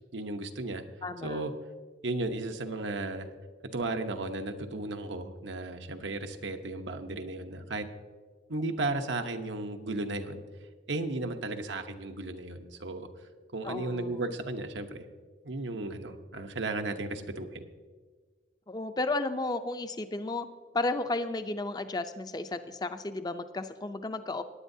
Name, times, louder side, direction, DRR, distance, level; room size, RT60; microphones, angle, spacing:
voice 1, 0.1-0.8 1.2-1.5 2.0-3.3 3.7-7.8 8.5-10.4 10.9-13.1 13.5-15.0 15.4-17.6, right 2 dB, 85° right, 6 dB, 0.9 m, -34 dB
voice 2, 1.0-1.4 13.6-14.2 18.7-20.5 20.7-24.4, left 2 dB, 20° left, 10 dB, 0.5 m, -33 dB
18.0 x 9.8 x 2.7 m, 1.5 s
head